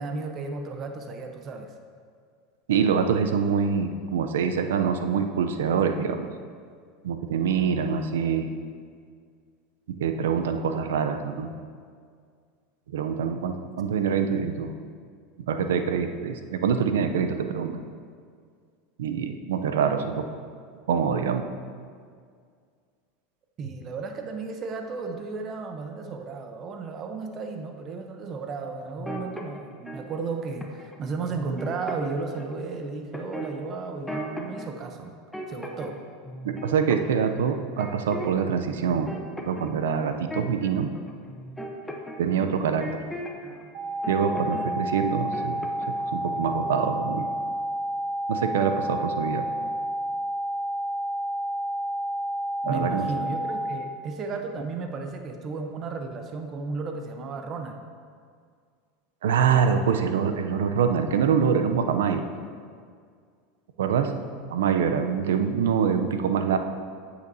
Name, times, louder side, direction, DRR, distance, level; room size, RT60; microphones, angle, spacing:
voice 1, 0.0-1.7 23.6-35.2 35.5-36.0 52.6-57.8, right 4 dB, 35° right, 5 dB, 0.8 m, -34 dB
voice 2, 2.7-6.3 7.0-8.5 10.0-11.5 12.9-14.7 15.5-17.7 19.0-20.2 20.9-21.5 36.4-39.1 39.5-40.9 42.2-42.9 44.1-45.7 46.1-47.2 48.3-49.5 52.6-53.1 59.2-62.2 63.8-64.1 64.5-66.6, right 6 dB, 90° right, 7 dB, 0.6 m, -25 dB
sound 1, 29.0-30.0 30.6-30.9 31.2-32.5 33.1-34.7 35.0-36.0 36.2-38.5 38.8-43.6 44.0-44.7 45.0-46.0 46.3-46.5, equal, 5° left, 0.9 m, -38 dB
sound 2, 43.7-53.7, equal, 50° right, 1.1 m, -30 dB
9.2 x 8.0 x 2.7 m, 2.1 s
supercardioid pair, 120°, 0 cm